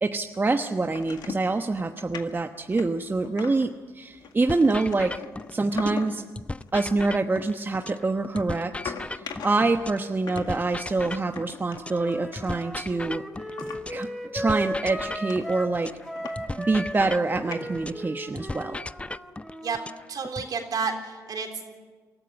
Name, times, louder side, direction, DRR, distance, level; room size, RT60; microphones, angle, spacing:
voice 1, 0.0-5.2 5.5-6.2 6.7-13.2 13.9-14.1 14.3-15.9 16.6-18.8, right 3 dB, 25° right, 6 dB, 1.1 m, -26 dB
sound 1, 0.9-1.5 1.8-2.2 2.7-3.8 4.2-6.3 6.6-6.9 7.7-9.8 10.3-13.1 13.6-14.1 14.4-14.5 14.9-15.0 15.3-16.4 16.6-17.1 17.5-18.0, left 6 dB, 70° left, 1.8 m, -40 dB
sound 2, 4.5-6.1 6.3-10.1 10.3-14.1 14.3-18.1 18.3-20.5, left 2 dB, 15° left, 0.6 m, -37 dB
Wind instrument woodwind instrument, 11.8-15.8 16.0-20.0, equal, ahead, 3.2 m, -36 dB
voice 2, 20.1-21.7, right 5 dB, 60° right, 5 dB, 3.6 m, -31 dB
24.0 x 14.0 x 9.7 m, 1.4 s
supercardioid pair, 55°, 7 cm